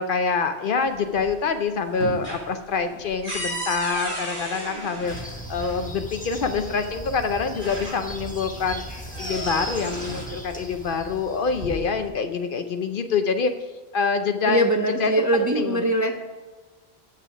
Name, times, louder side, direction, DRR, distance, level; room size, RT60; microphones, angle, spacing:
voice 1, 0.0-13.5 13.9-14.7 15.0-15.9, left 5 dB, 60° left, 8 dB, 0.7 m, -26 dB
sound 1, 0.8-1.5 1.8-5.8 6.9-7.0 7.4-8.3 8.7-10.4 11.3-12.1, equal, 50° right, 3.1 m, -34 dB
sound 2, 5.0-11.8, equal, 10° left, 1.2 m, -37 dB
voice 2, 14.5-16.1, right 1 dB, 20° right, 2 dB, 0.6 m, -22 dB
8.5 x 5.8 x 5.9 m, 1.2 s
omnidirectional pair, 1.1 m